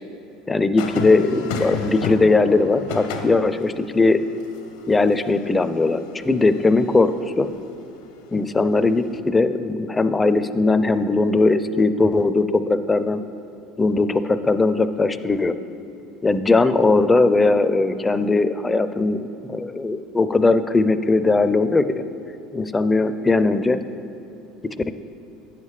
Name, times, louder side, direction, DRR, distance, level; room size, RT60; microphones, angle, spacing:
voice 1, 0.5-4.2 4.9-7.5 8.3-13.2 13.8-15.5 16.2-22.0 22.5-23.8, left 3 dB, 15° left, 12 dB, 0.4 m, -19 dB
sound 1, 0.8-7.1 8.9-9.2, left 5 dB, 80° left, 0.7 m, -34 dB
9.4 x 7.3 x 3.2 m, 2.9 s
hypercardioid pair, 85°, 0 cm